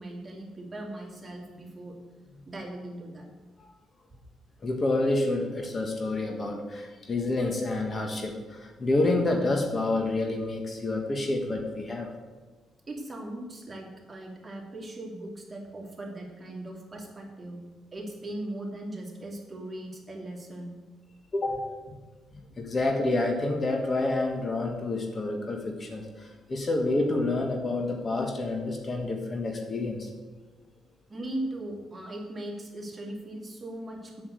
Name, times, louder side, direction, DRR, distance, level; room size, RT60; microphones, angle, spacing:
voice 1, 0.0-2.0 2.5-3.3 12.9-17.6 17.9-20.7 31.1-34.2, right 1 dB, 20° right, -1 dB, 2.7 m, -39 dB
voice 2, 4.6-12.1 21.3-21.6 22.6-30.1, left 2 dB, 35° left, 3 dB, 1.5 m, -28 dB
8.0 x 7.0 x 8.0 m, 1.3 s
cardioid pair, 90°, 0 cm